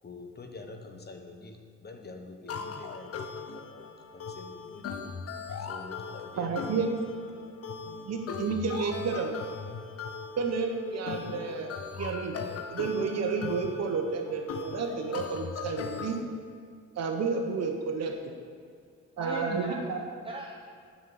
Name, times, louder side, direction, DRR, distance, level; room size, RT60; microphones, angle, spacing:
voice 1, 0.0-5.0 5.6-6.8 7.3-7.5, left 3 dB, 35° left, 4 dB, 1.2 m, -46 dB
sound 1, 2.5-16.2, left 5 dB, 50° left, 0.9 m, -39 dB
voice 2, 6.4-7.0 8.0-9.3 10.4-12.4 12.7-16.2 16.9-18.1 19.2-20.0, right 4 dB, 60° right, 4 dB, 1.4 m, -31 dB
voice 3, 19.2-20.6, right 2 dB, 20° right, 0 dB, 0.9 m, -38 dB
7.9 x 6.6 x 7.5 m, 2.2 s
cardioid pair, 90°, 30 cm